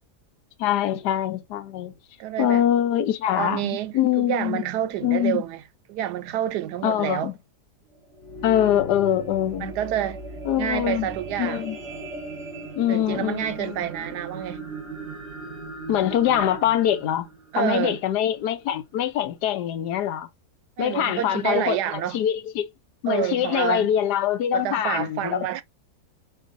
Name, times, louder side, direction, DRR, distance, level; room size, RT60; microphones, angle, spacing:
voice 1, 0.6-1.9 2.4-4.6 5.0-5.4 6.8-7.4 8.4-9.7 10.4-11.1 11.4-11.8 12.8-13.8 15.9-17.3 17.6-20.3 20.8-21.8 22.1-22.7 23.0-25.5, left 11 dB, 85° left, 1.3 m, -24 dB
voice 2, 2.2-2.6 3.4-5.6 5.9-7.3 9.6-10.2 10.6-11.6 12.9-14.7 17.5-18.0 20.8-22.2 23.1-23.9 24.5-25.6, right 11 dB, 90° right, 1.2 m, -28 dB
sound 1, 7.9-18.5 19.1-19.2, right 2 dB, 50° right, 2.4 m, -38 dB
4.5 x 4.3 x 2.6 m
omnidirectional pair, 1.7 m